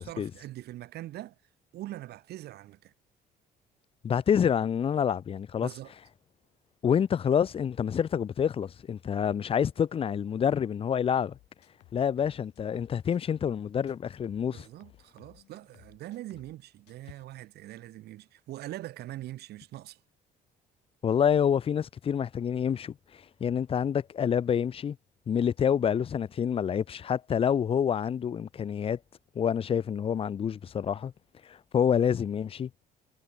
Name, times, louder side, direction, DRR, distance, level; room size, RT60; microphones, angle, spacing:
voice 1, 0.0-1.4 1.7-2.9 5.6-5.9 14.5-20.0, right 15 dB, 75° right, 3.6 m, -42 dB
voice 2, 4.0-5.7 6.8-11.4 11.9-14.7 21.0-22.9 23.4-25.0 25.3-29.0 29.4-31.1 31.5-32.7, left 8 dB, 35° left, 0.6 m, -27 dB
sound 1, 11.2-13.6 13.9-16.6 16.9-17.2, left 18 dB, 85° left, 5.2 m, -59 dB
cardioid pair, 110°, 17 cm